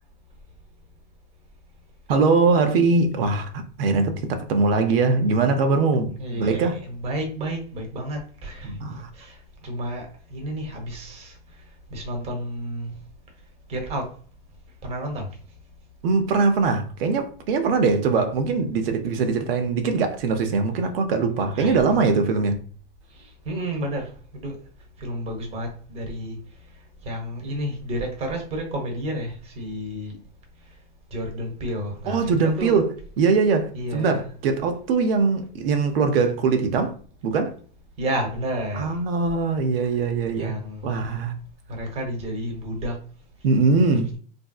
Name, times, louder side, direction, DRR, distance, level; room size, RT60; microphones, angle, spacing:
voice 1, 2.1-3.5 3.8-6.8 8.6-9.1 16.0-22.6 32.1-37.0 37.2-37.6 38.7-40.5 40.8-41.3 43.4-44.1, right 4 dB, 75° right, 0.7 m, -22 dB
voice 2, 6.2-12.9 13.7-14.2 14.8-15.4 21.5-22.1 23.1-24.6 25.0-30.2 30.6-30.7 31.1-32.8 33.7-34.2 38.0-39.0 40.3-40.9 41.7-43.0, equal, 20° right, 0.9 m, -31 dB
3.3 x 2.6 x 2.3 m
supercardioid pair, 145°, 29 cm